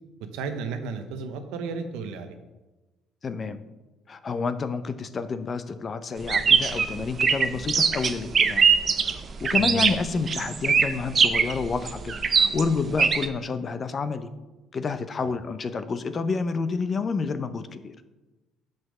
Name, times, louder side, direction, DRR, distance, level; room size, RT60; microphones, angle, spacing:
voice 1, 0.3-2.4 9.6-9.8 15.2-15.3, right 5 dB, 85° right, 7 dB, 0.8 m, -33 dB
voice 2, 3.2-3.6 4.1-8.7 9.0-14.3 14.7-17.9, left 4 dB, 35° left, 11 dB, 0.6 m, -29 dB
sound 1, 6.2-13.3, right 6 dB, 40° right, 0.6 m, -22 dB
5.8 x 5.1 x 6.2 m, 1.1 s
supercardioid pair, 85°, 0 cm